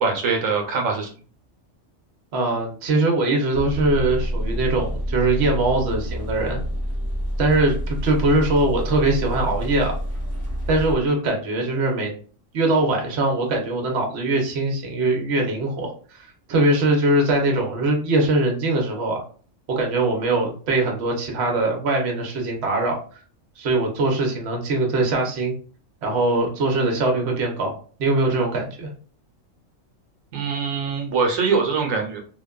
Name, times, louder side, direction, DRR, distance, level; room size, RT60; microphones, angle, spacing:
voice 1, 0.0-1.1 30.3-32.2, right 4 dB, 85° right, 2 dB, 1.0 m, -23 dB
voice 2, 2.3-6.6 7.4-9.9 10.7-12.1 12.5-19.2 19.7-23.2 23.6-25.5 26.0-28.9, right 2 dB, 60° right, 1 dB, 0.9 m, -22 dB
sound 1, 3.5-11.0, equal, 30° left, 0.8 m, -28 dB
2.9 x 2.2 x 2.3 m, 0.41 s
omnidirectional pair, 1.4 m